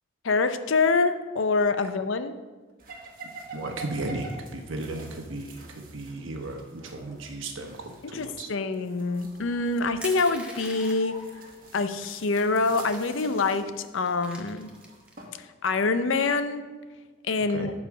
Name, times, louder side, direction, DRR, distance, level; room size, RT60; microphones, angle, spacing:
voice 1, 0.2-2.3 8.1-11.2 11.7-14.7 15.6-16.6 17.3-17.7, left 3 dB, 75° left, 10 dB, 0.6 m, -25 dB
sound 1, 2.8-15.3, right 2 dB, 45° right, 1.5 m, -47 dB
voice 2, 3.5-8.5 17.5-17.7, right 2 dB, 80° right, 3 dB, 1.1 m, -35 dB
Crushing, 10.0-11.2 12.0-12.1 12.4-13.6 14.0-15.1, right 1 dB, 5° right, 1.0 m, -42 dB
12.0 x 4.9 x 5.0 m, 1.3 s
head